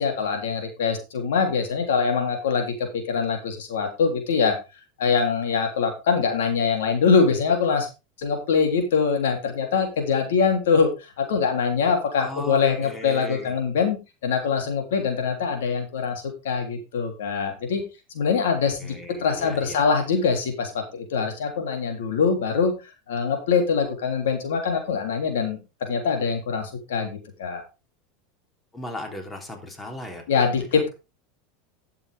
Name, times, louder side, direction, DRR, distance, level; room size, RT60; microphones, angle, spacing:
voice 1, 0.0-4.5 5.0-7.9 8.2-10.9 11.2-14.0 14.2-17.8 18.1-18.9 19.2-22.7 23.1-27.6 30.3-30.9, left 5 dB, 85° left, 4 dB, 3.3 m, -23 dB
voice 2, 12.2-13.5 18.8-19.8 28.7-30.4 30.7-30.9, left 1 dB, 15° left, 3 dB, 3.4 m, -37 dB
12.0 x 7.4 x 3.6 m, 0.27 s
hypercardioid pair, 110°, 0 cm